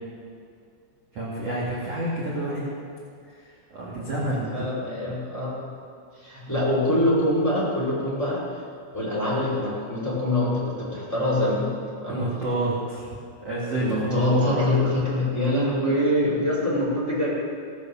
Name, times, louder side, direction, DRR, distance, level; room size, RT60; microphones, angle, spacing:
voice 1, 1.1-2.6 3.7-4.7 12.1-13.1 13.4-14.6, right 1 dB, 40° right, -7 dB, 2.5 m, -28 dB
voice 2, 4.3-5.7 6.1-8.6 8.9-11.7 12.0-12.2 13.7-17.3, left 1 dB, 5° left, -9 dB, 4.0 m, -24 dB
18.0 x 8.4 x 7.2 m, 2.4 s
omnidirectional pair, 5.8 m